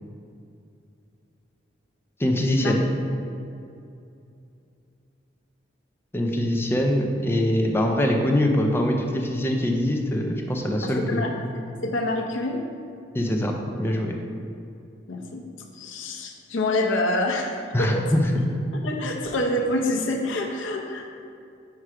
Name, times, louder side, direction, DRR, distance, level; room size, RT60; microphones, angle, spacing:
voice 1, 2.2-2.9 6.1-11.3 13.1-13.5 13.8-14.1 17.7-18.2, left 1 dB, 10° left, 1 dB, 0.4 m, -23 dB
voice 2, 10.8-11.3 11.8-12.6 15.1-15.4 15.7-17.5 17.8-18.1 18.7-21.1, left 1 dB, 85° left, 2 dB, 0.7 m, -26 dB
4.9 x 4.4 x 4.8 m, 2.6 s
head